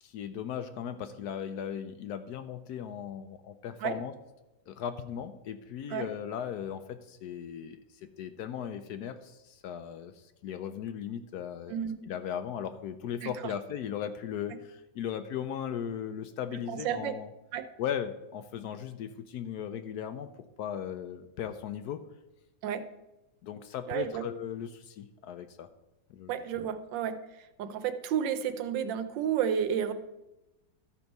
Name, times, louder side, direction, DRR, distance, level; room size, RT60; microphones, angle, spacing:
voice 1, 0.0-4.1 4.7-11.7 12.0-17.3 17.8-20.3 20.6-22.0 23.4-25.7 26.1-26.4, left 9 dB, 70° left, 9 dB, 1.0 m, -37 dB
voice 2, 16.7-17.1 17.5-17.6 22.6-22.8 23.9-24.2 26.3-27.1 27.6-29.9, right 9 dB, 85° right, 10 dB, 1.4 m, -31 dB
13.0 x 4.6 x 5.3 m, 0.99 s
omnidirectional pair, 1.9 m